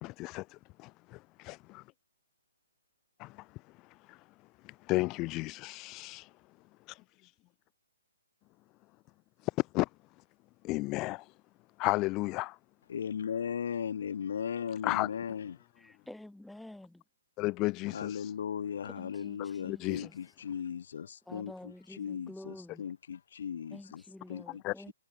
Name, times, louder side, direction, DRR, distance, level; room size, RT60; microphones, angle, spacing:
voice 1, 0.0-1.8 3.2-3.5 4.1-4.2 4.6-6.3 6.9-7.3 9.6-9.9 10.6-11.3 11.8-12.6 14.8-15.1 17.4-18.3 19.7-20.1 24.6-24.7, left 22 dB, 25° left, 0.9 m, -33 dB
voice 2, 12.9-15.6 17.9-21.5 21.9-24.0 24.3-24.6 24.9-25.0, left 8 dB, 60° left, 1.6 m, -37 dB
voice 3, 15.8-17.0 18.8-20.2 21.2-22.8 23.7-24.9, left 1 dB, ahead, 3.1 m, -49 dB
hypercardioid pair, 150°, 0 cm